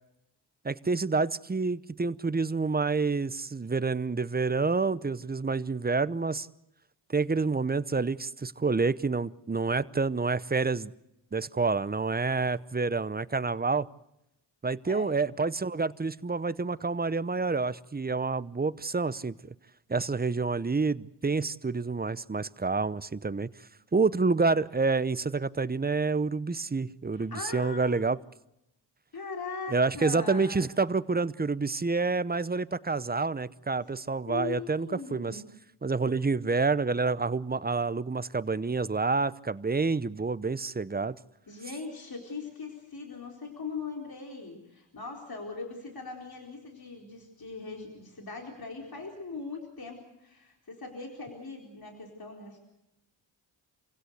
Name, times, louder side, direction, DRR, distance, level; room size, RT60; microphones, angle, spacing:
voice 1, 0.6-6.5 7.1-10.9 11.3-13.9 14.6-19.5 19.9-23.5 23.9-28.2 29.7-35.4 35.8-41.2, right 4 dB, 20° right, 17 dB, 0.8 m, -28 dB
voice 2, 27.1-28.0 29.1-30.7 34.3-35.5 41.5-52.6, left 4 dB, 50° left, 1 dB, 4.4 m, -40 dB
27.0 x 16.5 x 8.0 m, 0.89 s
cardioid pair, 50°, 47 cm